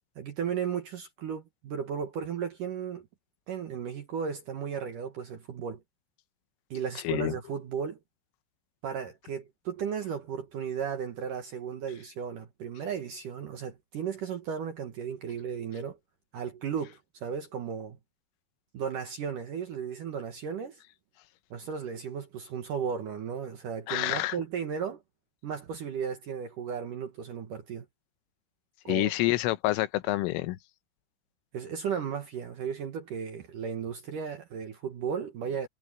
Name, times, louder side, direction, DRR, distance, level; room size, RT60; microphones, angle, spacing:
voice 1, 0.2-3.1 3.5-5.8 6.7-8.0 8.8-16.0 16.3-18.0 18.7-20.8 21.5-25.0 25.4-27.9 28.8-29.1 31.5-35.7, right 7 dB, 70° right, 2.0 m, -35 dB
voice 2, 23.9-24.4 28.9-30.6, left 18 dB, 80° left, 3.4 m, -27 dB
omnidirectional pair, 6.0 m